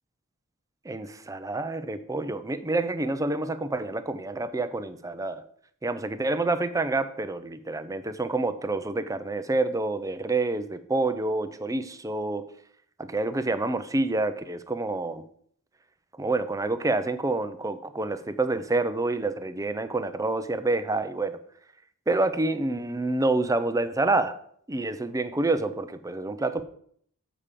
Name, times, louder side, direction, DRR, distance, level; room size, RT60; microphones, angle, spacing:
voice 1, 0.8-5.4 5.8-12.4 13.0-15.2 16.2-21.4 22.1-24.3 24.7-26.6, right 2 dB, 15° right, 11 dB, 0.6 m, -28 dB
7.4 x 4.9 x 6.7 m, 0.62 s
head